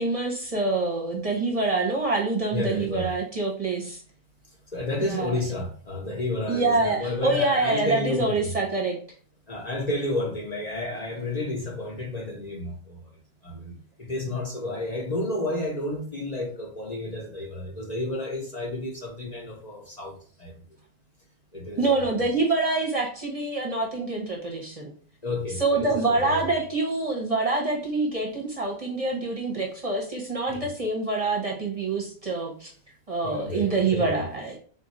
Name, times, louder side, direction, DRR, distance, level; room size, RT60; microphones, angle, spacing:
voice 1, 0.0-4.0 5.0-5.4 6.5-9.0 21.8-24.9 25.6-32.7 33.1-34.6, right 3 dB, 35° right, 0.8 m, -26 dB
voice 2, 2.5-3.1 4.7-8.5 9.5-13.1 13.4-20.1 20.4-20.5 21.5-22.2 25.2-26.4 30.5-30.6 33.2-34.2, left 2 dB, 40° left, 0.9 m, -31 dB
3.9 x 2.5 x 4.0 m
omnidirectional pair, 1.1 m